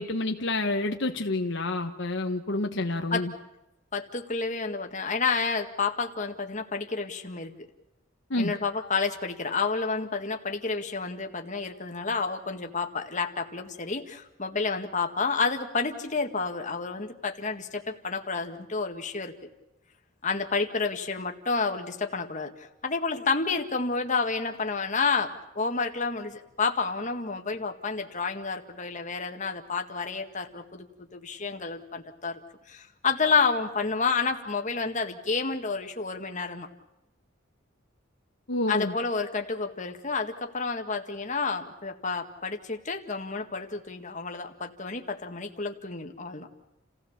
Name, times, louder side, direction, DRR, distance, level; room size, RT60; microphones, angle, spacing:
voice 1, 0.0-3.3 8.3-8.5 38.5-38.9, left 2 dB, 65° left, 4 dB, 1.2 m, -28 dB
voice 2, 3.9-7.6 8.4-19.3 20.2-30.9 31.1-32.4 32.7-36.7 38.7-46.5, left 4 dB, 40° left, 4 dB, 1.9 m, -30 dB
29.5 x 16.0 x 7.3 m, 0.96 s
head